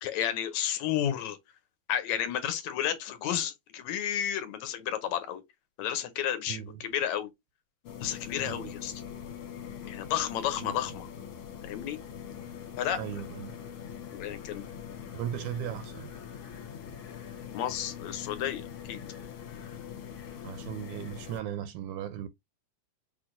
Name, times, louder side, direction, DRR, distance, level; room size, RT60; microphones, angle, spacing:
voice 1, 0.0-1.4 1.9-5.4 5.8-7.3 8.0-8.9 9.8-11.1 11.6-12.0 12.8-13.0 14.1-14.6 17.5-19.0, left 10 dB, 75° left, 1.8 m, -32 dB
voice 2, 6.5-6.8 8.4-8.7 10.6-10.8 13.0-13.6 15.1-16.1 20.4-22.3, right 10 dB, 80° right, 1.8 m, -37 dB
sound 1, 7.8-21.4, left 8 dB, 60° left, 1.9 m, -43 dB
6.2 x 3.2 x 2.5 m
omnidirectional pair, 3.7 m